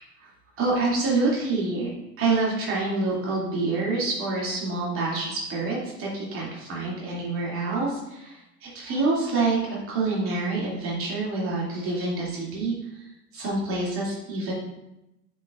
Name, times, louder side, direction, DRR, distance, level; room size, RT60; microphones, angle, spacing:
voice 1, 0.6-1.9 2.2-9.6 9.9-13.1 13.3-14.5, right 3 dB, 25° right, -5 dB, 2.6 m, -27 dB
7.5 x 6.8 x 2.5 m, 0.89 s
figure-of-eight pair, 95°, 49 cm